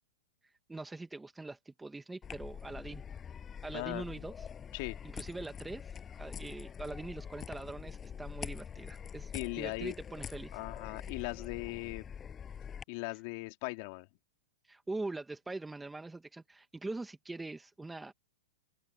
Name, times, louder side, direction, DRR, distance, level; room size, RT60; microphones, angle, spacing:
voice 1, 0.7-3.0 3.6-4.5 5.1-10.6 14.6-18.1, right 2 dB, 5° right, 1.6 m, -43 dB
sound 1, 2.2-12.8, left 7 dB, 15° left, 6.5 m, -45 dB
voice 2, 3.7-4.1 4.7-5.0 9.3-9.9 10.5-12.0 12.9-14.1, left 25 dB, 45° left, 2.4 m, -39 dB
open air
hypercardioid pair, 140°, 0 cm